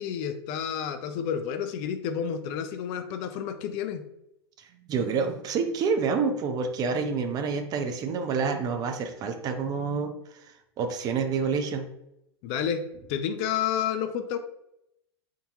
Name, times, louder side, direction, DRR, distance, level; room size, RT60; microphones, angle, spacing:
voice 1, 0.0-4.0 12.4-12.8 13.1-14.4, left 8 dB, 40° left, 8 dB, 0.3 m, -30 dB
voice 2, 4.6-10.1 10.4-10.5 10.8-11.8, right 5 dB, 30° right, 6 dB, 0.4 m, -28 dB
3.7 x 2.6 x 2.7 m, 0.81 s
figure-of-eight pair, 90°, 14 cm